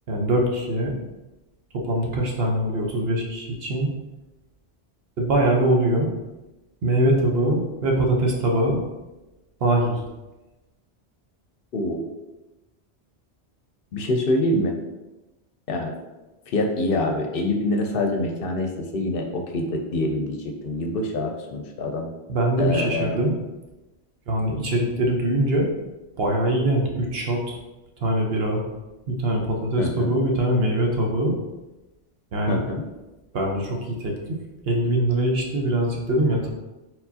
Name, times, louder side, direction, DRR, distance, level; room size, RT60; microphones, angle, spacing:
voice 1, 0.1-1.0 1.7-3.9 5.2-6.1 6.8-8.8 9.6-10.0 22.3-23.3 24.3-25.7 26.2-27.6 28.0-28.6 29.1-31.4 32.3-32.6 33.3-34.4 34.7-36.5, right 1 dB, 65° right, 0 dB, 1.1 m, -22 dB
voice 2, 13.9-14.8 15.7-15.9 16.5-22.1 22.6-23.2 29.8-30.1 32.5-32.8, left 1 dB, 65° left, 3 dB, 0.7 m, -25 dB
4.6 x 3.9 x 2.7 m, 1.1 s
omnidirectional pair, 1.1 m